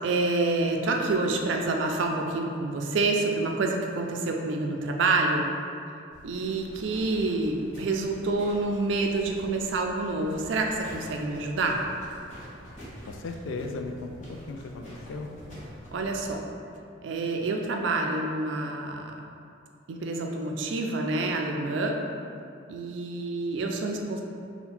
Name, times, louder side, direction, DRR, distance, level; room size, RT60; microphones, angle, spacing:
voice 1, 0.0-5.5 6.2-11.8 15.9-16.5 17.0-19.1 19.9-22.0 22.7-24.2, right 3 dB, 75° right, 2 dB, 0.4 m, -27 dB
sound 1, 6.1-16.4, equal, 40° left, 1.1 m, -47 dB
voice 2, 13.1-15.3, left 3 dB, 90° left, 5 dB, 0.3 m, -36 dB
3.7 x 2.2 x 4.3 m, 2.5 s
head